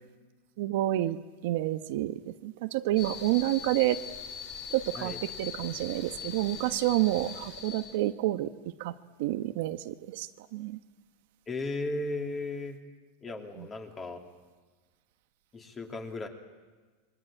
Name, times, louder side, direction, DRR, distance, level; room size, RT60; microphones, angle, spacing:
voice 1, 0.6-1.2 1.4-4.0 4.7-8.5 8.8-10.8 13.6-13.7, right 15 dB, 60° right, 9 dB, 1.1 m, -29 dB
sound 1, 3.0-8.0, left 7 dB, 45° left, 4.9 m, -41 dB
voice 2, 11.5-12.8 13.2-14.2 15.5-16.3, left 2 dB, 15° left, 3 dB, 2.9 m, -35 dB
27.5 x 23.5 x 9.0 m, 1.4 s
supercardioid pair, 165°, 0 cm